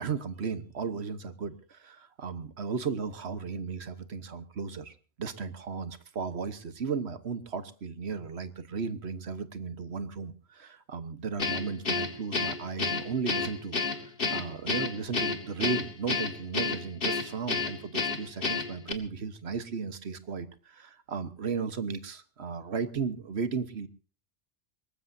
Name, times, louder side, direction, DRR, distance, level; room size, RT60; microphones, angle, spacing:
voice 1, 0.0-4.9 5.2-23.9, right 5 dB, 80° right, 11 dB, 1.4 m, -35 dB
Guitar, 11.4-18.9, left 4 dB, 60° left, 1.8 m, -30 dB
22.5 x 19.0 x 2.7 m, 0.35 s
omnidirectional pair, 1.1 m